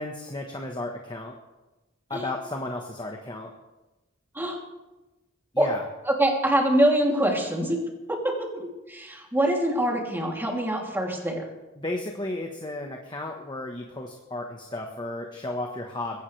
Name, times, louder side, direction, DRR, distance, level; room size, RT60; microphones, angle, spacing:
voice 1, 0.0-1.4 2.1-3.5 5.5-5.8 11.8-16.2, left 2 dB, 25° left, 1 dB, 1.3 m, -33 dB
voice 2, 6.1-7.8 8.1-8.2 8.5-11.4, right 1 dB, 10° right, -1 dB, 3.0 m, -24 dB
21.5 x 16.5 x 3.4 m, 1.1 s
head